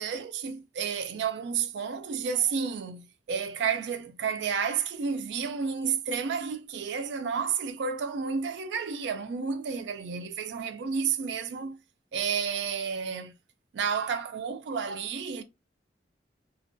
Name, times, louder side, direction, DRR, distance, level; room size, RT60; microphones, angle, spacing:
voice 1, 0.0-11.8 12.1-13.4 13.7-15.4, right 6 dB, 70° right, 0.3 m, -31 dB
2.2 x 2.2 x 2.6 m
head